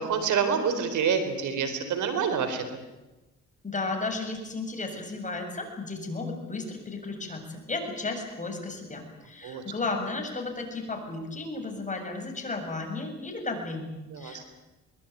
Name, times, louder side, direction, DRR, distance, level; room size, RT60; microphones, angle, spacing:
voice 1, 0.0-2.6 9.4-9.6 14.1-14.4, right 6 dB, 75° right, 9 dB, 4.3 m, -27 dB
voice 2, 3.6-14.5, left 3 dB, 25° left, 4 dB, 7.4 m, -34 dB
23.0 x 22.0 x 9.4 m, 1.0 s
cardioid pair, 90°, 30 cm